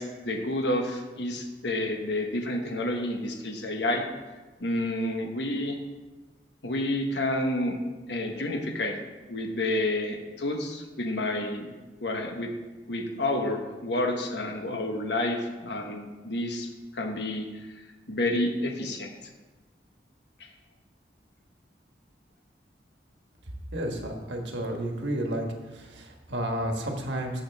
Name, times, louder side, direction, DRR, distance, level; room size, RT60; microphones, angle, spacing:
voice 1, 0.0-4.0 4.6-5.8 6.6-7.8 8.1-9.0 9.3-11.7 12.0-12.5 12.9-16.7 16.9-17.4 18.1-19.1 20.4-20.5, left 1 dB, 70° left, 3 dB, 1.2 m, -29 dB
voice 2, 23.7-25.5 25.7-27.4, right 1 dB, 80° right, 2 dB, 1.4 m, -31 dB
13.5 x 6.3 x 3.5 m, 1.2 s
head